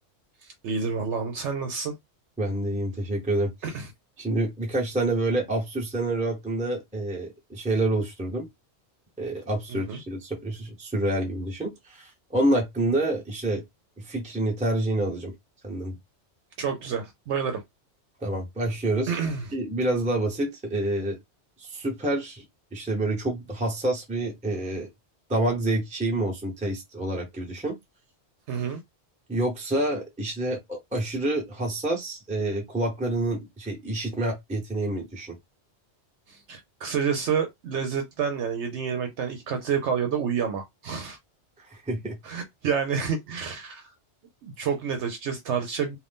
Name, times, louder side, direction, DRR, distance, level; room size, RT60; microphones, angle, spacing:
voice 1, 0.4-1.9 3.6-3.9 9.7-10.0 16.6-17.6 19.1-19.5 28.5-28.8 36.3-41.2 42.2-43.9 44.4-46.0, right 6 dB, 75° right, 0.9 m, -29 dB
voice 2, 2.4-3.7 4.2-8.5 9.2-13.6 14.0-15.3 15.6-16.0 18.2-19.2 19.5-21.2 21.6-22.4 22.7-24.9 25.3-27.7 29.3-35.4 41.6-42.2, right 1 dB, 5° right, 0.7 m, -28 dB
2.5 x 2.5 x 3.5 m
omnidirectional pair, 1.2 m